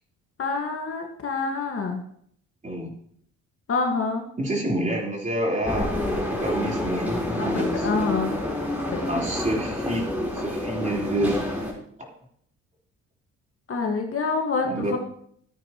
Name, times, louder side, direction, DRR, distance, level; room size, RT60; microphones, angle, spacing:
voice 1, 0.4-2.0 3.7-4.2 7.4-8.4 8.9-9.1 13.7-15.0, left 4 dB, 45° left, 2 dB, 1.8 m, -27 dB
voice 2, 4.4-7.9 9.1-10.1 10.3-11.4 12.0-12.1 14.6-15.0, right 1 dB, 25° right, -2 dB, 3.9 m, -28 dB
sound 1, 5.6-11.7, left 1 dB, 5° right, 4.2 m, -28 dB
15.0 x 9.0 x 3.1 m, 0.65 s
cardioid pair, 90°, 30 cm